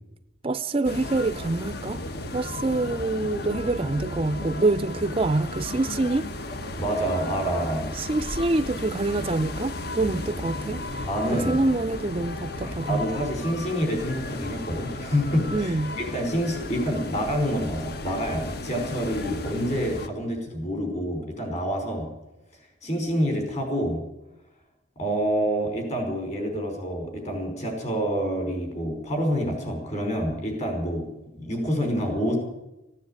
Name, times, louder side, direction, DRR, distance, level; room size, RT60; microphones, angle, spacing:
voice 1, 0.4-2.0 2.3-6.3 7.9-13.0 15.5-16.0, right 2 dB, 30° right, 12 dB, 0.5 m, -26 dB
sound 1, 0.8-20.1, left 2 dB, 55° left, 1.2 m, -34 dB
voice 2, 6.8-7.9 11.1-11.6 12.6-22.1 22.8-24.0 25.0-31.1 31.4-32.4, equal, 35° left, 3 dB, 5.2 m, -27 dB
16.0 x 9.7 x 9.0 m, 0.93 s
head